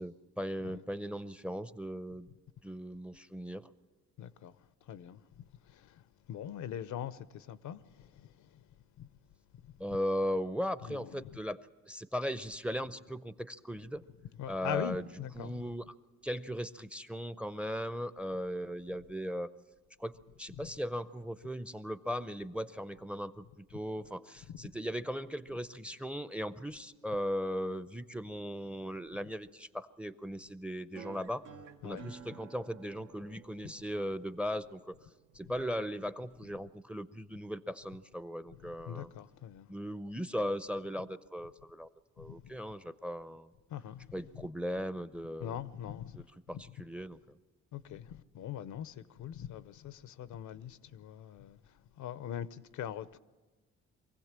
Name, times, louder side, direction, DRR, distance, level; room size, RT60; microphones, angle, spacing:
voice 1, 0.0-2.3 2.6-3.7 9.8-11.6 11.9-14.0 14.5-15.0 15.4-15.8 16.2-19.5 20.0-23.4 23.7-31.4 31.8-34.9 35.3-39.1 39.7-41.9 42.2-43.5 44.1-45.6 46.5-47.4, equal, 5° right, 0.5 m, -38 dB
voice 2, 4.2-9.1 9.6-9.7 10.8-11.4 14.4-15.6 20.6-20.7 24.5-24.7 31.8-32.1 33.6-33.7 38.6-39.7 42.2-42.5 43.7-44.5 45.4-46.3 46.5-46.8 47.7-53.2, left 10 dB, 75° left, 0.7 m, -43 dB
sound 1, 30.9-35.9, right 7 dB, 85° right, 1.1 m, -54 dB
24.0 x 15.5 x 7.5 m
cardioid pair, 90°, 30 cm